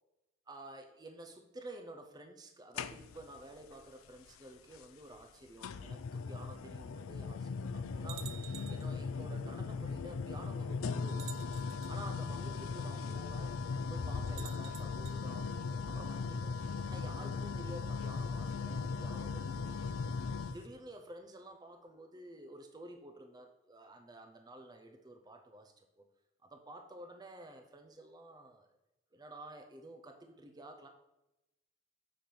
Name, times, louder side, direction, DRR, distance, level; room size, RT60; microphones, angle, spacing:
voice 1, 0.5-11.5 11.9-13.5 13.9-16.6 16.9-26.0 26.4-28.7 29.1-30.9, right 1 dB, 20° right, 4 dB, 0.6 m, -51 dB
sound 1, 2.7-3.4 4.7-4.8 5.6-20.6, left 4 dB, 90° left, 0.4 m, -38 dB
sound 2, 8.1-8.9 10.1-10.2 11.1-11.9 14.3-15.2, right 12 dB, 80° right, 0.6 m, -50 dB
7.0 x 5.0 x 5.8 m, 0.95 s
head